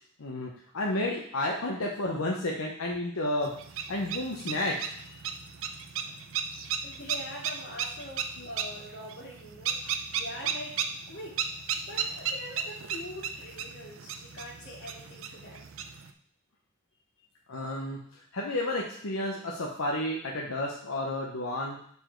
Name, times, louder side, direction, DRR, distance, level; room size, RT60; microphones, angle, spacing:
voice 1, 0.2-3.5 3.9-5.2 8.4-8.6 17.5-21.8, left 1 dB, 80° left, -2 dB, 0.8 m, -32 dB
sound 1, 3.4-16.1, right 7 dB, 70° right, 0.5 m, -35 dB
voice 2, 6.8-11.4 11.9-15.7, left 1 dB, 55° left, -3 dB, 2.0 m, -43 dB
6.9 x 4.3 x 4.5 m, 0.62 s
head